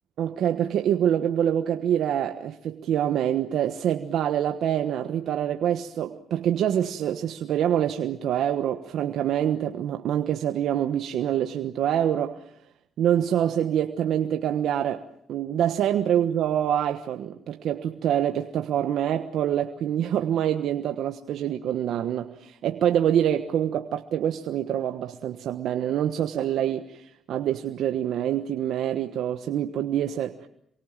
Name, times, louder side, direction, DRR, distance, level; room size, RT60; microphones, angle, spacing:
voice 1, 0.2-12.4 13.0-30.5, right 10 dB, 75° right, 6 dB, 1.3 m, -26 dB
27.5 x 23.5 x 7.4 m, 0.72 s
cardioid pair, 90°, 0 cm